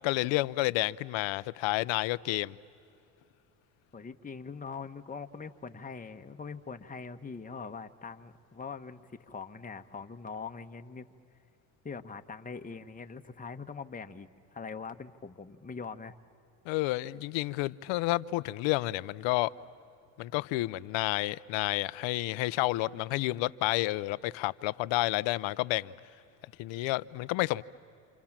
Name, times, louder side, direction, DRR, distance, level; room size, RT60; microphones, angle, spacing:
voice 1, 0.0-2.6 16.7-19.5 20.2-25.9 26.6-27.6, left 19 dB, 70° left, 0.8 m, -30 dB
voice 2, 3.9-11.1 11.8-16.1, left 5 dB, 15° left, 1.2 m, -42 dB
28.0 x 28.0 x 7.4 m
supercardioid pair, 80°, 47 cm